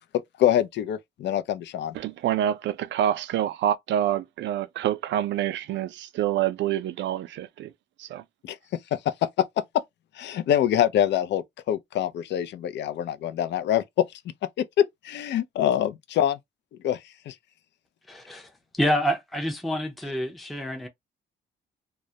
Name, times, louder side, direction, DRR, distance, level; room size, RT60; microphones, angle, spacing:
voice 1, 0.4-2.0 8.4-9.3 10.1-14.0 15.0-16.4 16.8-17.4, left 11 dB, 65° left, 0.4 m, -25 dB
voice 2, 1.9-7.7 8.0-8.2, right 11 dB, 70° right, 0.4 m, -27 dB
voice 3, 18.1-18.5 18.7-20.9, equal, ahead, 0.5 m, -27 dB
2.2 x 2.0 x 2.7 m
cardioid pair, 90°, 20 cm